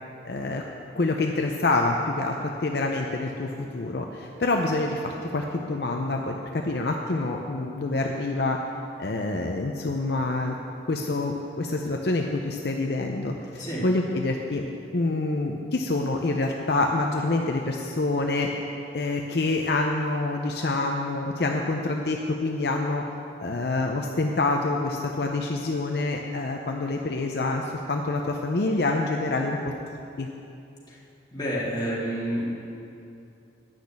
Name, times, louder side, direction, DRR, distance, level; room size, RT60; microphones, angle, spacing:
voice 1, 0.2-0.6 1.0-2.4 2.6-8.6 9.0-10.6 10.9-14.6 14.9-18.5 18.9-23.0 23.4-29.7 30.2-30.3, left 2 dB, 60° left, 2 dB, 0.6 m, -26 dB
voice 2, 31.3-32.4, equal, 25° left, -7 dB, 2.4 m, -29 dB
10.0 x 6.4 x 8.2 m, 2.7 s
head